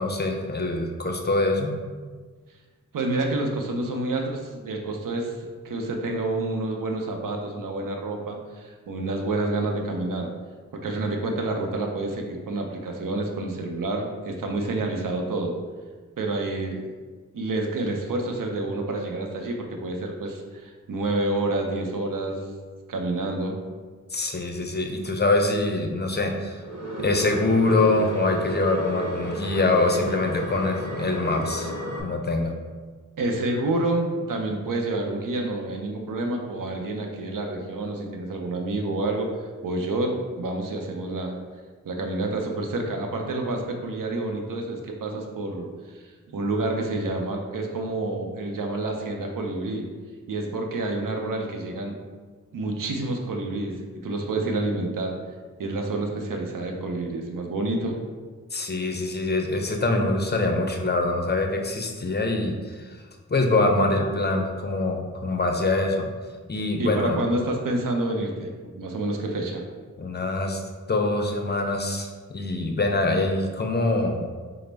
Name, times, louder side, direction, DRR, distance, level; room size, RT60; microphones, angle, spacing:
voice 1, 0.0-1.8 24.1-26.6 27.0-31.7 32.0-32.5 58.5-63.0 63.3-66.1 66.5-67.2 70.0-70.6 70.9-74.2, left 2 dB, 30° left, 3 dB, 0.5 m, -24 dB
voice 2, 2.9-10.3 10.7-15.5 16.2-16.9 17.3-22.6 22.9-23.6 33.2-39.3 39.6-41.4 41.8-45.7 45.9-49.9 50.3-52.0 52.5-53.7 54.0-55.1 55.6-58.0 66.8-69.6, right 2 dB, 85° right, 2 dB, 0.6 m, -28 dB
sound 1, 26.6-32.0, equal, 55° right, 1.2 m, -32 dB
4.9 x 2.0 x 3.3 m, 1.4 s
wide cardioid pair, 55°, 32 cm